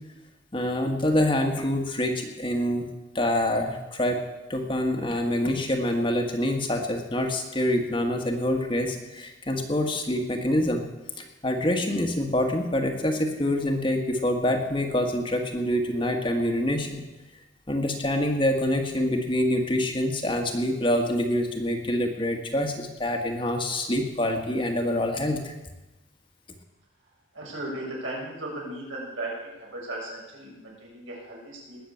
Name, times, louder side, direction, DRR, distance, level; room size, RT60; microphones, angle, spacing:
voice 1, 0.5-2.9 3.1-4.2 4.5-10.8 11.2-17.0 17.7-25.5, left 1 dB, 25° left, 3 dB, 1.6 m, -26 dB
voice 2, 27.3-31.8, right 1 dB, 75° right, -3 dB, 6.4 m, -36 dB
20.0 x 7.2 x 8.5 m, 1.1 s
head